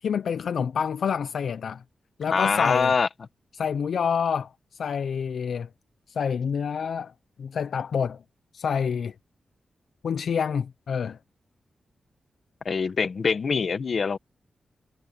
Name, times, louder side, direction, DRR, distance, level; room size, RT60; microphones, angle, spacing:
voice 1, 0.0-1.8 2.2-2.9 3.5-5.7 6.1-7.1 7.4-8.2 8.5-9.1 10.0-11.2, left 7 dB, 65° left, 0.6 m, -27 dB
voice 2, 2.3-3.1 12.6-14.2, left 5 dB, 45° left, 1.5 m, -24 dB
wide cardioid pair, 165°, 0 cm